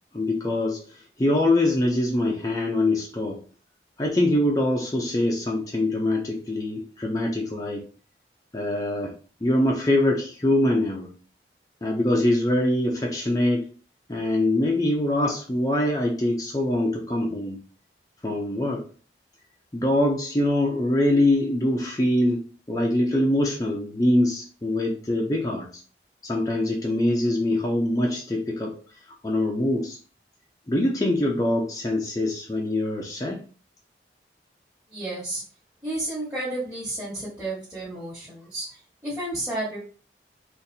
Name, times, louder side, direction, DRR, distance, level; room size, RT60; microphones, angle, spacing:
voice 1, 0.1-3.4 4.0-7.8 8.5-9.1 9.4-11.1 11.8-13.7 14.1-17.6 18.2-18.9 19.7-25.7 26.2-28.8 29.2-30.0 30.7-33.4, left 1 dB, 20° left, -1 dB, 0.5 m, -24 dB
voice 2, 34.9-35.4 35.8-39.8, right 1 dB, 10° right, -11 dB, 1.2 m, -32 dB
4.0 x 2.5 x 2.7 m, 0.39 s
head